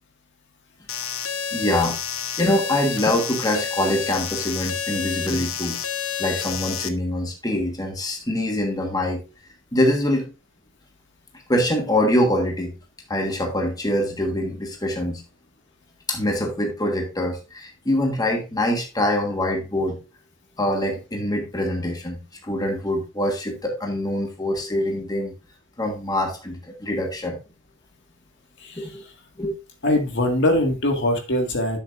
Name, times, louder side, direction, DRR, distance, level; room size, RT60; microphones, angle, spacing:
sound 1, 0.9-6.9, left 8 dB, 90° left, 1.0 m, -29 dB
voice 1, 1.5-2.0 2.4-5.8 6.2-9.2 9.7-10.3 11.5-12.7 13.1-15.2 16.1-20.0 20.6-25.3 25.8-27.4 28.8-29.0 29.4-29.6, left 1 dB, 20° left, 1.5 m, -24 dB
voice 2, 28.6-29.0 29.8-31.8, left 1 dB, 60° left, 1.9 m, -22 dB
11.5 x 6.7 x 2.6 m
head